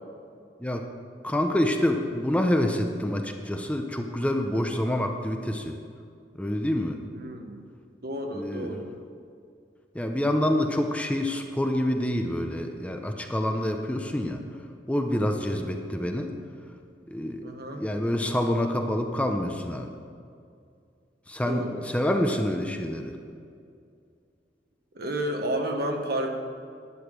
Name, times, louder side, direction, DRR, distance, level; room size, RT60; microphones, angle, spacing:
voice 1, 1.2-5.8 6.4-7.0 8.3-8.7 9.9-14.4 14.9-16.3 17.1-17.4 17.8-19.9 21.3-23.2, left 1 dB, 10° left, 4 dB, 0.7 m, -27 dB
voice 2, 7.1-7.6 8.0-9.0 15.4-15.7 17.4-17.9 21.5-21.8 24.9-26.4, right 1 dB, 60° right, 3 dB, 1.3 m, -31 dB
11.0 x 8.2 x 6.7 m, 2.3 s
head